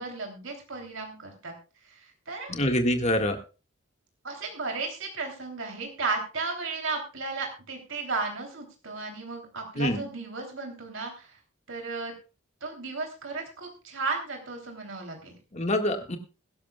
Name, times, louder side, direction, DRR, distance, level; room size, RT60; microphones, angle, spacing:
voice 1, 0.0-1.5 1.8-2.6 4.2-11.4 11.7-12.1 12.6-15.4, right 4 dB, 75° right, 2 dB, 3.3 m, -34 dB
voice 2, 2.5-3.4 9.8-10.0 15.5-16.2, left 1 dB, 35° left, 5 dB, 1.8 m, -25 dB
22.0 x 11.5 x 2.4 m, 0.32 s
head